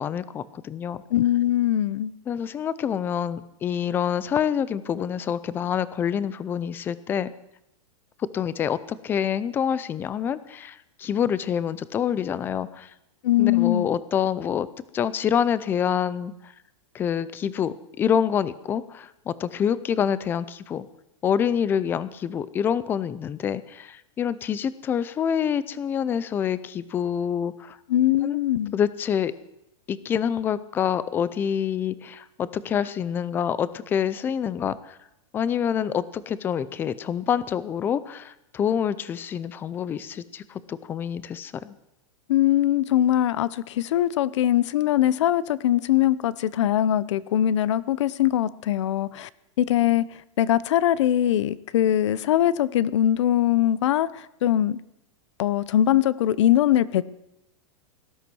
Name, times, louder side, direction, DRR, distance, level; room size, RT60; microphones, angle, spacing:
voice 1, 0.0-1.0 2.3-7.3 8.3-8.8 9.0-12.9 13.4-14.7 14.9-16.3 16.9-20.8 21.2-27.8 28.2-28.4 28.7-29.3 29.9-34.8 35.3-40.4 40.7-41.7, left 8 dB, 10° left, 17 dB, 0.5 m, -26 dB
voice 2, 1.1-2.1 13.2-13.9 27.9-28.7 42.3-49.3 49.6-50.0 50.4-54.8 55.4-57.0, left 12 dB, 60° left, 19 dB, 0.8 m, -22 dB
18.5 x 12.5 x 6.2 m, 0.86 s
supercardioid pair, 170°, 17 cm